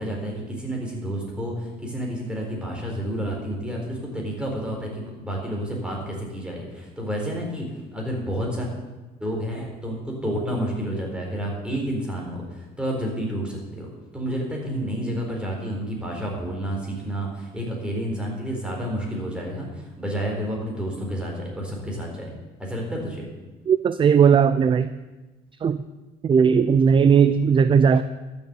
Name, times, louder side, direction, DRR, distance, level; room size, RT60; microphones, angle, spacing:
voice 1, 0.0-7.7 7.9-8.7 9.2-13.9 14.1-22.3 22.6-23.3, equal, 5° right, -1 dB, 4.0 m, -30 dB
voice 2, 23.7-24.9 25.6-25.8 26.2-28.0, right 6 dB, 30° right, 13 dB, 0.5 m, -17 dB
12.5 x 6.9 x 8.4 m, 1.2 s
cardioid pair, 110°, 17 cm